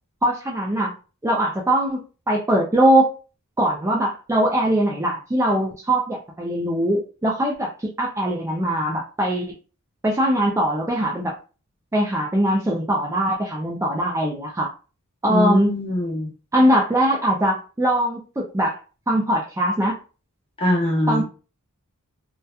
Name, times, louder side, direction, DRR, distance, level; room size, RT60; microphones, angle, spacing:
voice 1, 0.2-0.9 1.2-3.1 3.6-7.7 8.0-9.5 10.0-11.3 11.9-14.7 15.2-15.7 16.5-18.8 19.1-20.0 21.1-21.2, right 1 dB, 10° right, -2 dB, 0.4 m, -21 dB
voice 2, 15.3-16.3 20.6-21.2, left 1 dB, 25° left, -2 dB, 1.0 m, -22 dB
2.7 x 2.2 x 2.3 m, 0.34 s
head